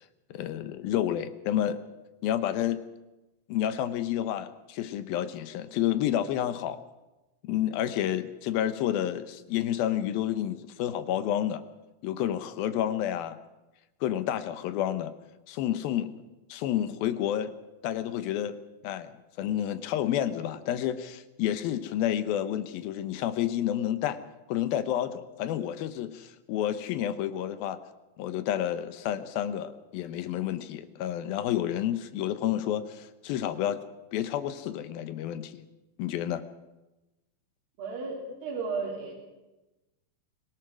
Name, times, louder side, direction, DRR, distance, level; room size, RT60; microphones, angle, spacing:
voice 1, 0.3-1.8 2.2-2.8 3.5-6.8 7.4-11.6 12.0-13.4 14.0-15.1 15.5-16.1 16.5-17.5 17.8-18.6 18.8-19.1 19.4-24.2 24.5-27.8 28.2-33.8 34.1-35.6 36.0-36.4, left 11 dB, 75° left, 11 dB, 2.7 m, -30 dB
voice 2, 37.8-39.1, right 4 dB, 65° right, -3 dB, 4.8 m, -34 dB
24.5 x 17.0 x 6.2 m, 1.0 s
omnidirectional pair, 4.4 m